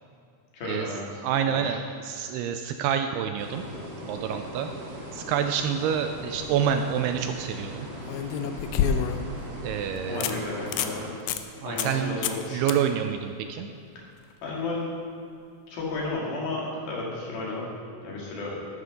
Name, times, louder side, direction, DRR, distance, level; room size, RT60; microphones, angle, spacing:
voice 1, 0.5-1.2 1.5-1.8 10.1-11.2 11.6-12.6 14.4-14.9 15.7-17.7 18.0-18.6, left 3 dB, 65° left, -4 dB, 3.9 m, -33 dB
voice 2, 1.2-3.6 4.1-4.7 5.1-7.9 9.6-10.4 11.6-12.2 12.5-13.7, right 8 dB, 80° right, 6 dB, 2.4 m, -27 dB
sound 1, 3.4-11.1, equal, 35° right, 2.0 m, -40 dB
sound 2, 6.3-6.7 8.1-9.4 9.8-9.9 10.2-10.3 10.7-10.9 11.3-11.4 11.8-12.0 12.2-12.4 12.7-12.8 15.9-16.0, left 8 dB, 85° left, 2.2 m, -28 dB
13.0 x 12.0 x 3.8 m, 2.5 s
omnidirectional pair, 4.9 m